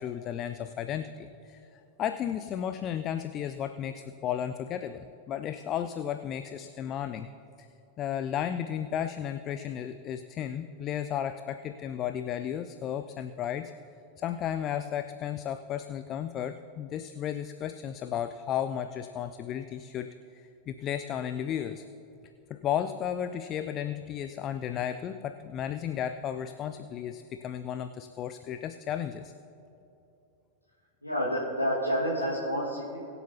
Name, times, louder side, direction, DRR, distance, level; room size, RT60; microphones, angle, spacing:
voice 1, 0.0-7.3 7.6-7.7 8.0-13.7 14.2-21.8 22.5-29.3, left 9 dB, 30° left, 9 dB, 0.4 m, -34 dB
voice 2, 31.0-33.1, equal, 85° left, -7 dB, 1.8 m, -29 dB
22.5 x 8.2 x 2.8 m, 2.8 s
figure-of-eight pair, 90°, 0 cm